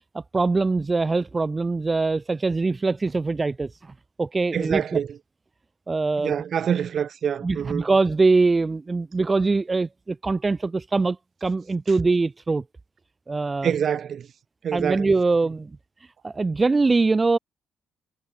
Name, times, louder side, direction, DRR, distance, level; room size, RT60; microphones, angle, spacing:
voice 1, 0.1-5.0 5.9-6.4 7.4-12.6 13.3-13.7 14.7-17.4, right 3 dB, 25° right, 2.1 m, -23 dB
voice 2, 4.5-5.2 6.2-7.9 13.6-14.3 14.6-15.1, right 8 dB, 55° right, 7.6 m, -26 dB
cardioid pair, 90°, 0 cm